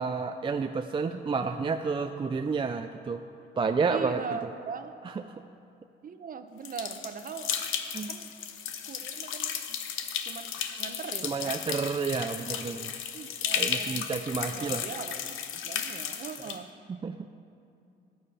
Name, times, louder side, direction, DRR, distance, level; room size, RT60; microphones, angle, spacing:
voice 1, 0.0-3.2 3.6-4.5 5.0-5.4 7.9-8.1 11.2-12.9 13.6-14.8 16.9-17.3, right 5 dB, 25° right, 7 dB, 0.4 m, -30 dB
voice 2, 3.9-4.9 6.0-7.5 8.0-8.3 8.7-9.8 10.2-11.6 13.1-14.0 14.3-16.7, right 6 dB, 45° right, 9 dB, 0.8 m, -41 dB
sound 1, 6.7-16.6, left 8 dB, 85° left, 0.8 m, -34 dB
14.0 x 9.2 x 4.2 m, 2.6 s
cardioid pair, 90°, 20 cm